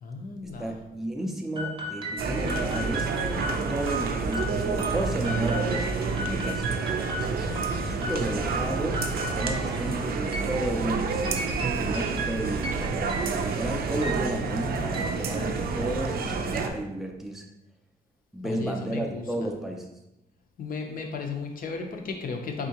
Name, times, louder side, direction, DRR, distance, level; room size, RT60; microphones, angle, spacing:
voice 1, 0.0-0.7 7.5-8.1 18.4-19.2 20.6-22.7, left 4 dB, 55° left, 3 dB, 0.6 m, -35 dB
voice 2, 0.6-6.9 7.2-7.5 7.8-9.0 9.3-11.4 11.7-17.4 18.3-19.9, right 1 dB, ahead, 1 dB, 0.4 m, -33 dB
sound 1, 1.6-16.0, right 1 dB, 30° right, 0.7 m, -36 dB
sound 2, 2.2-16.7, right 4 dB, 60° right, 0.4 m, -29 dB
4.3 x 3.6 x 2.8 m, 0.92 s
wide cardioid pair, 160°, 17 cm